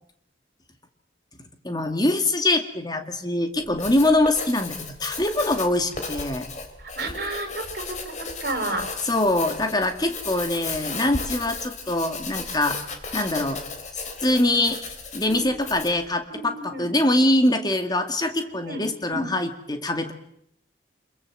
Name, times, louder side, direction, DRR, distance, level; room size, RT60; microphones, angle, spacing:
voice 1, 1.6-6.5 9.0-12.8 13.1-13.6 14.2-14.8 15.1-20.1, left 1 dB, 20° left, 7 dB, 2.1 m, -23 dB
Writing, 3.6-16.1, left 4 dB, 40° left, 3.5 m, -35 dB
voice 2, 6.8-8.1 8.4-8.9 15.3-15.5 16.3-16.9 18.2-18.8 19.1-19.2, right 2 dB, 55° right, 5 dB, 6.1 m, -31 dB
26.5 x 22.0 x 7.8 m, 0.75 s
head